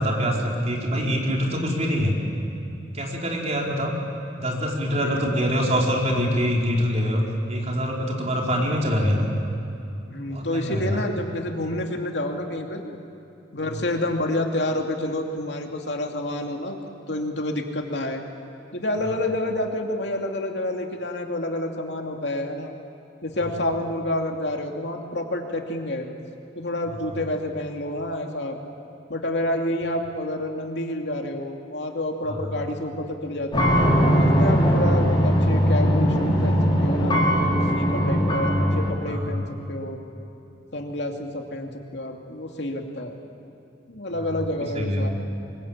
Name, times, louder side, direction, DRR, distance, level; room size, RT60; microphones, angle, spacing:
voice 1, 0.0-2.1 2.9-4.0 4.4-7.2 7.5-9.3 10.3-11.0 32.2-32.6 37.9-38.2 39.1-39.4 44.2-44.4 44.7-45.1, equal, 40° right, -1 dB, 4.3 m, -25 dB
voice 2, 5.0-5.8 10.1-13.0 13.5-16.8 17.1-18.2 18.7-22.7 23.2-26.1 26.6-28.6 29.1-33.7 34.2-40.0 40.7-43.2 43.9-45.1, left 1 dB, 75° left, 2 dB, 2.7 m, -29 dB
sound 1, 33.5-38.9, equal, 30° left, 4.9 m, -20 dB
24.5 x 22.5 x 8.9 m, 2.8 s
head